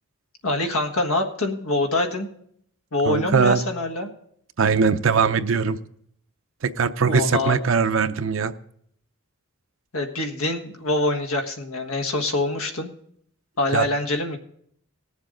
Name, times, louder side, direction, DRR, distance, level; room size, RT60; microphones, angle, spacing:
voice 1, 0.4-2.3 2.9-4.1 7.0-7.6 9.9-12.9 13.6-14.4, left 2 dB, 85° left, 5 dB, 1.5 m, -25 dB
voice 2, 3.1-3.6 4.6-5.8 6.6-8.5 13.7-13.9, right 5 dB, 65° right, 10 dB, 0.6 m, -20 dB
20.5 x 7.3 x 3.8 m, 0.66 s
head